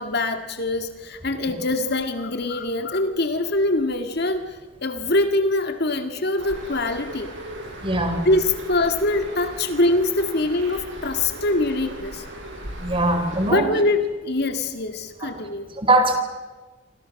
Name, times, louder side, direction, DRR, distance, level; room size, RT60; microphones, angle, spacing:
voice 1, 0.0-4.5 4.8-7.3 8.3-12.2 13.5-15.7, left 2 dB, 60° left, 7 dB, 2.0 m, -23 dB
Bird, 6.4-13.5, right 1 dB, 75° right, 7.5 m, -37 dB
voice 2, 7.8-8.3 12.8-13.7 15.2-15.3 15.8-16.2, right 2 dB, 30° right, 7 dB, 4.1 m, -21 dB
28.5 x 25.0 x 6.5 m, 1.3 s
head